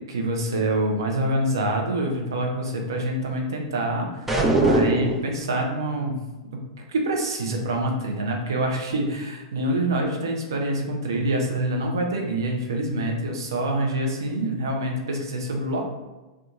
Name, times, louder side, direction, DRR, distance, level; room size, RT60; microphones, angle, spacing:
voice 1, 0.1-6.2 6.5-6.6 6.9-15.9, right 1 dB, 70° right, 1 dB, 0.5 m, -26 dB
sound 1, 4.3-5.3, right 1 dB, 10° right, 0.4 m, -20 dB
2.8 x 2.3 x 2.4 m, 1.1 s
figure-of-eight pair, 95°, 2 cm